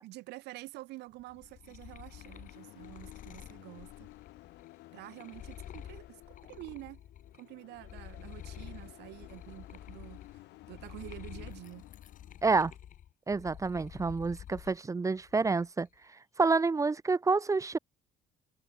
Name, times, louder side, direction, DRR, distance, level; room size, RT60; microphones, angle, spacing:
voice 1, 0.0-4.1 4.9-7.0 7.3-10.4 10.7-11.9, right 19 dB, 90° right, 4.7 m, -48 dB
sound 1, 1.2-7.4 7.7-14.8 15.2-15.8, left 10 dB, 50° left, 1.4 m, -49 dB
sound 2, 1.3-12.4, left 19 dB, 85° left, 4.9 m, -54 dB
voice 2, 12.4-12.7 13.3-15.9 16.4-17.8, right 4 dB, 20° right, 0.6 m, -28 dB
cardioid pair, 110°, 17 cm